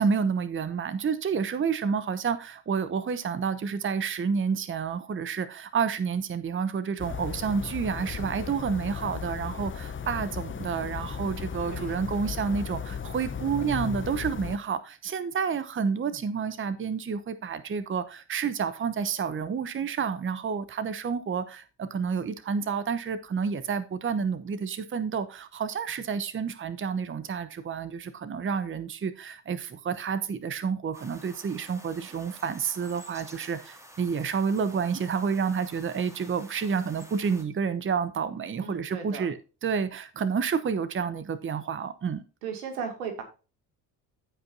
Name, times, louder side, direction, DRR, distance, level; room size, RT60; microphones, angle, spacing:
voice 1, 0.0-42.2, right 6 dB, 25° right, 0.9 m, -29 dB
sound 1, 7.0-14.6, left 6 dB, 25° left, 0.9 m, -36 dB
sound 2, 30.9-37.4, equal, 5° right, 2.2 m, -50 dB
voice 2, 38.6-39.3 42.4-43.2, right 6 dB, 80° right, 2.4 m, -36 dB
15.0 x 5.3 x 2.7 m
hypercardioid pair, 55°, 44 cm